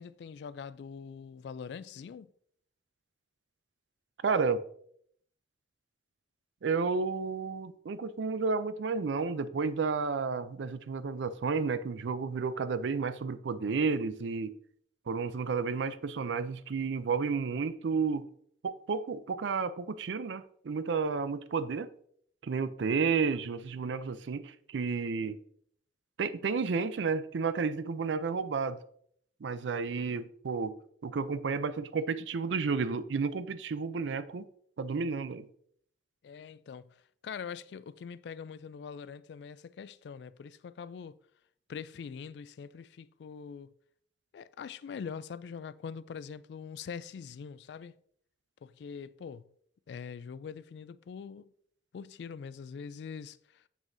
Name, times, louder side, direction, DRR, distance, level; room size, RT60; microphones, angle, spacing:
voice 1, 0.0-2.3 36.2-36.9 37.2-41.2 41.7-43.7 44.3-47.9 48.6-49.4 49.9-51.5 51.9-53.6, left 6 dB, 70° left, 0.3 m, -43 dB
voice 2, 4.2-4.6 6.6-14.5 15.1-18.2 18.6-21.9 22.4-25.4 26.2-28.8 29.4-30.7 31.0-34.4 34.8-35.5, right 5 dB, 85° right, 0.4 m, -31 dB
7.0 x 6.1 x 2.6 m
head